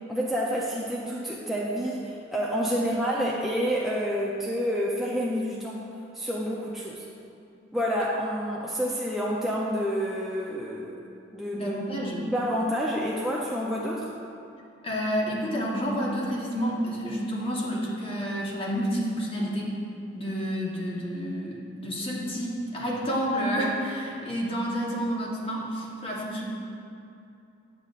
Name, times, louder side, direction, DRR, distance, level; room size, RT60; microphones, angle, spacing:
voice 1, 0.1-5.8 6.1-7.0 7.7-11.0 11.3-11.8 12.3-14.1, equal, ahead, -5 dB, 0.5 m, -28 dB
voice 2, 11.5-12.3 14.8-19.7 20.1-26.5, equal, 30° left, -4 dB, 1.0 m, -29 dB
10.5 x 6.6 x 2.4 m, 2.7 s
head